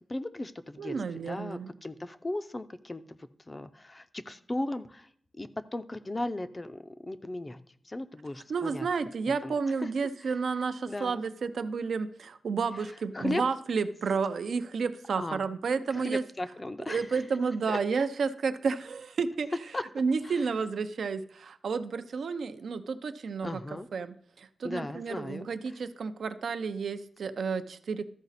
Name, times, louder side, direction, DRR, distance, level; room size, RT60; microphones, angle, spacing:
voice 1, 0.1-0.9 1.3-3.2 3.5-5.1 5.3-8.9 9.4-9.5 9.8-9.9 10.2-10.3 10.9-11.2 13.1-13.4 15.2-15.4 15.9-17.2 17.7-17.8 19.7-19.8 20.2-20.5 23.4-23.9 24.6-25.5, left 1 dB, 20° left, 11 dB, 0.4 m, -36 dB
voice 2, 0.8-1.7 8.5-16.2 16.9-19.5 20.0-23.6 23.9-28.1, right 5 dB, 75° right, 10 dB, 0.5 m, -31 dB
13.5 x 5.0 x 4.1 m, 0.64 s
wide cardioid pair, 150°, 0 cm